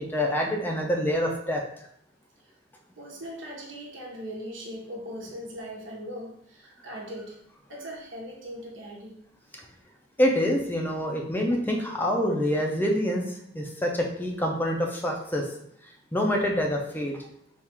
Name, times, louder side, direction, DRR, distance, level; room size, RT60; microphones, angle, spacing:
voice 1, 0.0-1.6 10.2-13.2 13.5-15.5 16.1-17.2, equal, 10° left, 1 dB, 0.4 m, -26 dB
voice 2, 3.0-7.4 7.7-9.2, equal, 80° right, -1 dB, 1.0 m, -39 dB
3.5 x 2.4 x 4.3 m, 0.70 s
head